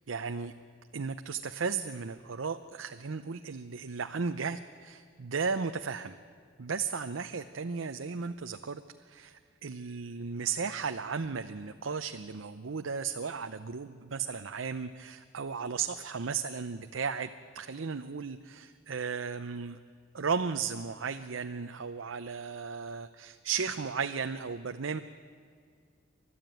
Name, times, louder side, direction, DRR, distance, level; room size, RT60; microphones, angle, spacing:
voice 1, 0.1-0.5 0.9-6.1 6.6-8.8 9.1-19.8 20.1-25.0, right 5 dB, 75° right, 8 dB, 0.7 m, -35 dB
30.0 x 12.5 x 9.1 m, 2.2 s
head